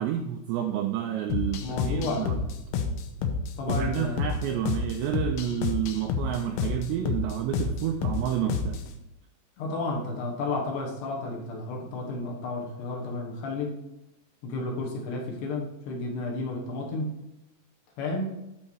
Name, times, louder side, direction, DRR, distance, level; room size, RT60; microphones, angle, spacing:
voice 1, 0.0-2.4 3.7-8.8, right 10 dB, 85° right, 5 dB, 2.5 m, -30 dB
sound 1, 1.3-8.9, left 5 dB, 85° left, 3.2 m, -30 dB
voice 2, 1.6-2.4 3.6-4.3 9.6-13.8 14.4-17.2 18.0-18.3, left 2 dB, 65° left, -1 dB, 3.1 m, -32 dB
11.5 x 4.6 x 4.6 m, 0.89 s
omnidirectional pair, 5.6 m